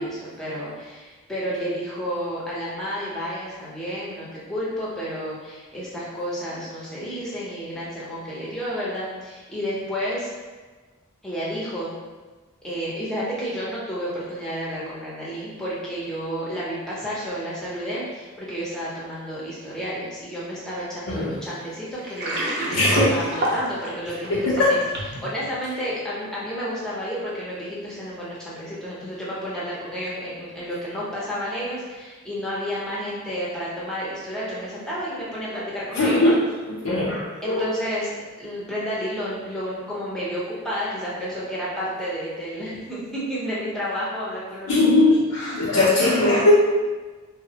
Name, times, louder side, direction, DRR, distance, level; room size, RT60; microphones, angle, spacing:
voice 1, 0.0-10.3 11.2-11.9 12.6-24.8 25.2-36.3 37.4-45.0 45.7-46.1, equal, 5° left, -8 dB, 0.6 m, -31 dB
Water, 22.0-25.2, right 1 dB, 45° right, 0.6 m, -27 dB
voice 2, 22.7-23.1 24.3-24.8 35.9-36.4 36.7-37.6 44.7-46.5, left 2 dB, 75° left, -7 dB, 0.5 m, -19 dB
3.2 x 2.0 x 2.7 m, 1.3 s
head